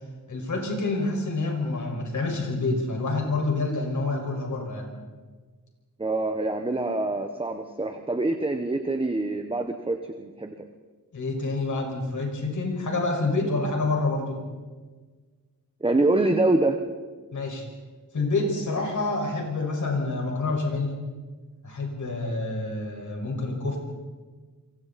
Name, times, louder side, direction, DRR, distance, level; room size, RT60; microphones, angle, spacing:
voice 1, 0.3-4.9 11.1-14.4 17.3-17.6 18.1-21.0 21.6-23.8, left 3 dB, 60° left, 1 dB, 5.6 m, -27 dB
voice 2, 6.0-10.5 15.8-16.8, right 2 dB, 15° right, 5 dB, 1.1 m, -25 dB
29.0 x 23.5 x 4.2 m, 1.4 s
wide cardioid pair, 155°, 34 cm